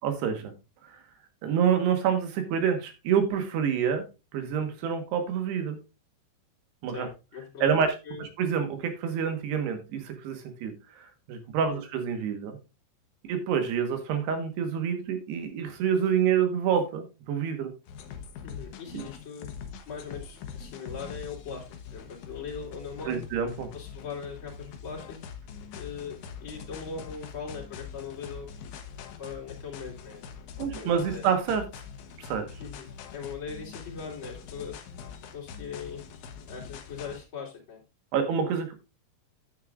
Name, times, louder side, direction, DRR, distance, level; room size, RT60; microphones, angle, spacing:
voice 1, 0.0-0.5 0.8-1.0 1.4-4.0 4.3-5.8 6.8-7.1 7.6-7.9 8.2-12.6 13.3-17.7 18.9-19.0 23.0-23.7 30.6-31.6 32.2-32.5 38.1-38.7, right 7 dB, 75° right, 7 dB, 3.4 m, -27 dB
voice 2, 6.9-8.2 11.6-11.8 18.4-19.5 19.9-21.6 21.9-23.2 23.7-25.2 25.7-28.5 29.2-30.3 30.6-31.2 32.6-32.9 33.1-34.7 35.3-36.0 36.5-37.8, left 5 dB, 35° left, -3 dB, 3.0 m, -40 dB
sound 1, 17.9-37.2, left 6 dB, 80° left, 1.7 m, -43 dB
9.8 x 9.6 x 2.5 m, 0.29 s
omnidirectional pair, 4.9 m